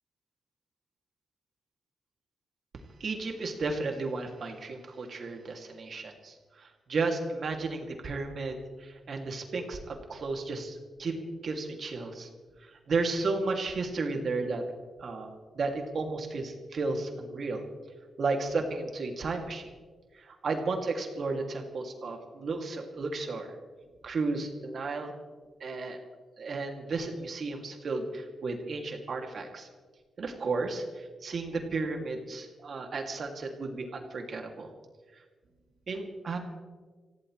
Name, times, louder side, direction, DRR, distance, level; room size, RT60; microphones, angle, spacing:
voice 1, 3.0-12.3 12.6-14.6 15.0-17.6 18.2-19.7 20.1-23.5 24.0-25.1 25.6-26.0 26.4-29.7 30.2-34.7 35.9-36.4, right 3 dB, 60° right, 3 dB, 2.6 m, -33 dB
26.0 x 16.5 x 3.3 m, 1.5 s
cardioid pair, 70°, 0 cm